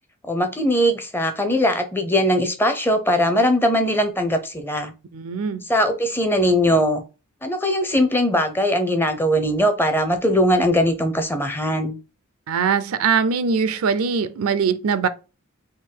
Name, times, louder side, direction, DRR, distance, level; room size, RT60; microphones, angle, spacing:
voice 1, 0.3-4.9 5.7-7.0 7.4-12.0, equal, 10° left, 0.5 m, -20 dB
voice 2, 5.1-5.6 12.5-15.1, right 6 dB, 70° right, 0.5 m, -21 dB
3.7 x 2.6 x 4.4 m
head